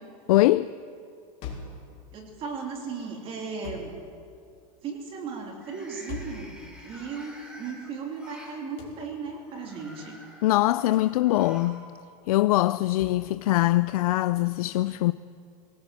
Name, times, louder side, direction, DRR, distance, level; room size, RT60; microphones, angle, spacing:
voice 1, 0.3-0.7 10.4-11.8 12.3-15.1, left 16 dB, 85° left, 0.5 m, -22 dB
sound 1, 1.4-1.8 3.6-4.0 6.1-6.5 8.8-9.0 10.9-11.2 13.0-13.3, left 5 dB, 35° left, 3.8 m, -39 dB
sound 2, 2.0-2.6 3.0-3.4 5.5-8.6 9.4-11.8 12.1-12.2 13.3-13.4, equal, 5° right, 3.5 m, -48 dB
voice 2, 2.1-3.9 4.8-10.2, right 5 dB, 30° right, 3.1 m, -36 dB
20.0 x 18.5 x 7.7 m
supercardioid pair, 160°, 18 cm